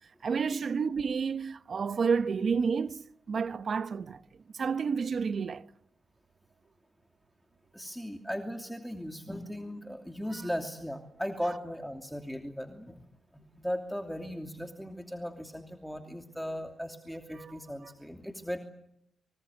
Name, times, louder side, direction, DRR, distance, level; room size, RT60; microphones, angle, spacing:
voice 1, 0.2-4.2 4.5-5.7 10.3-10.5 17.3-17.9, right 5 dB, 55° right, 1.0 m, -30 dB
voice 2, 7.7-13.1 13.3-18.6, equal, ahead, 2.8 m, -37 dB
25.0 x 24.5 x 8.2 m
cardioid pair, 65°, 0 cm